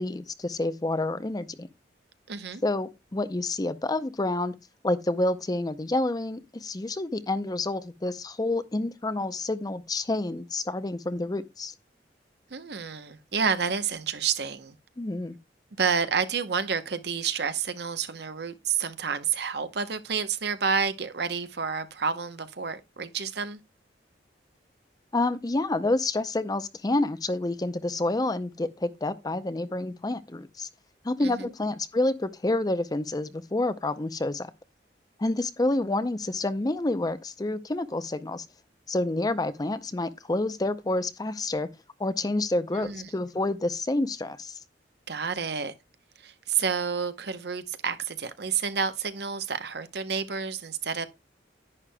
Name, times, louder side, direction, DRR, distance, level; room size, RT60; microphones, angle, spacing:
voice 1, 0.0-1.7 2.6-4.5 4.8-11.7 15.0-15.4 25.1-30.7 31.0-34.5 35.2-38.5 38.9-41.7 42.0-44.6, left 2 dB, 20° left, 0.5 m, -28 dB
voice 2, 2.3-2.6 12.5-14.8 15.8-23.6 31.2-31.5 42.7-43.0 45.1-45.7 46.2-51.1, right 6 dB, 65° right, 0.8 m, -29 dB
11.0 x 9.3 x 2.2 m
head